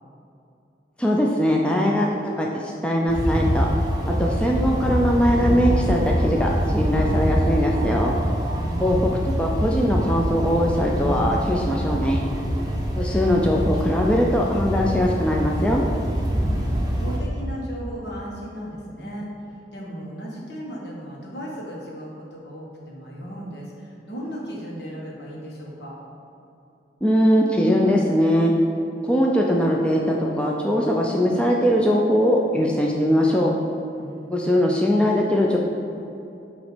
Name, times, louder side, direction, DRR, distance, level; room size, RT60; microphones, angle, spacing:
voice 1, 1.0-2.1 2.4-3.7 4.1-8.1 8.8-9.1 9.4-12.2 13.0-15.8 27.0-28.5 29.0-33.5 34.3-35.6, equal, 5° left, -2 dB, 0.4 m, -21 dB
sound 1, 3.1-17.2, equal, 20° right, 0.7 m, -24 dB
voice 2, 8.5-9.2 12.6-13.2 16.3-26.0 33.9-34.8, equal, 70° left, -4 dB, 1.5 m, -36 dB
8.1 x 3.1 x 5.0 m, 2.8 s
head